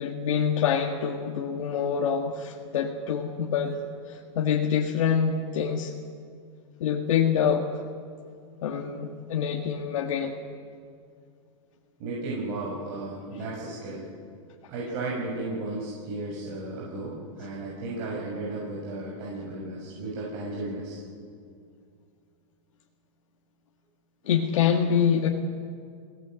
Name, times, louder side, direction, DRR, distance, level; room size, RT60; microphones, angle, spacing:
voice 1, 0.0-3.8 4.1-5.9 6.8-7.7 8.6-10.4 24.3-25.3, left 7 dB, 80° left, 0 dB, 1.9 m, -26 dB
voice 2, 12.0-14.1 14.7-21.0, right 2 dB, 45° right, -5 dB, 6.6 m, -34 dB
26.0 x 18.5 x 7.8 m, 2.3 s
supercardioid pair, 160°, 17 cm